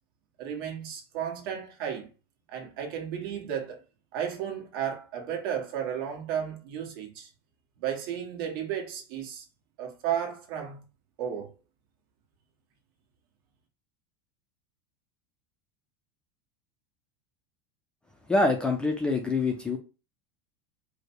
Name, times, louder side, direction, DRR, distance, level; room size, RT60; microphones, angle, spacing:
voice 1, 0.4-2.1 2.5-3.8 4.1-7.3 7.8-9.4 9.8-10.8 11.2-11.5, right 9 dB, 65° right, 1.5 m, -33 dB
voice 2, 18.3-19.8, left 2 dB, 5° left, 0.4 m, -25 dB
4.8 x 2.1 x 4.6 m
supercardioid pair, 170°, 13 cm